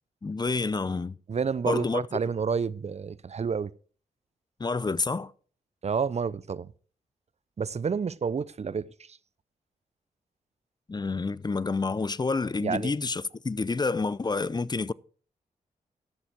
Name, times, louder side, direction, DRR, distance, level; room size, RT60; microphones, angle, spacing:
voice 1, 0.2-1.2 1.7-2.0 4.6-5.3 10.9-14.9, left 4 dB, 25° left, 0.6 m, -28 dB
voice 2, 1.3-3.7 5.8-6.7 7.6-8.9 12.6-12.9, right 6 dB, 45° right, 0.6 m, -29 dB
12.5 x 7.0 x 4.9 m
supercardioid pair, 45°, 16 cm